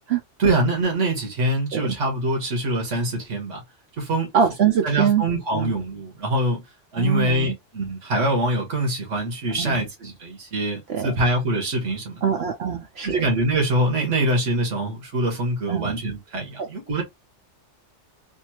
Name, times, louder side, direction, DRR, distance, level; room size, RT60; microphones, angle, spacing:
voice 1, 0.4-3.6 4.0-4.3 4.8-6.6 6.9-12.2 13.0-17.0, right 1 dB, 85° right, 1.7 m, -24 dB
voice 2, 4.3-5.2 5.5-5.7 6.9-7.6 9.6-9.8 10.9-11.1 12.2-13.2 15.7-15.9 16.6-16.7, right 8 dB, 65° right, 0.8 m, -23 dB
3.5 x 2.7 x 2.9 m
omnidirectional pair, 1.2 m